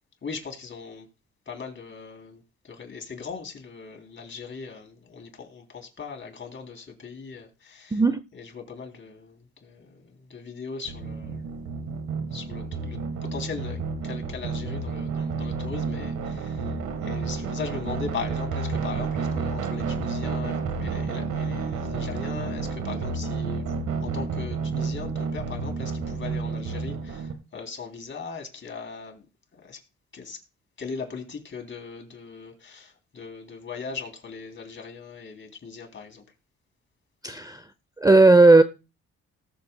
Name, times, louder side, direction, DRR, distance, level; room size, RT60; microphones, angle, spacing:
voice 1, 0.2-1.1 1.5-8.0 8.3-11.7 12.3-16.7 17.0-29.2 29.5-29.8 30.1-30.4 30.8-36.2, left 5 dB, 40° left, 3.2 m, -39 dB
voice 2, 7.9-8.2 37.2-37.6 38.0-38.6, right 3 dB, 10° right, 0.5 m, -15 dB
sound 1, 10.9-27.3, right 4 dB, 80° right, 1.5 m, -30 dB
19.0 x 7.2 x 2.2 m
cardioid pair, 90°, 30 cm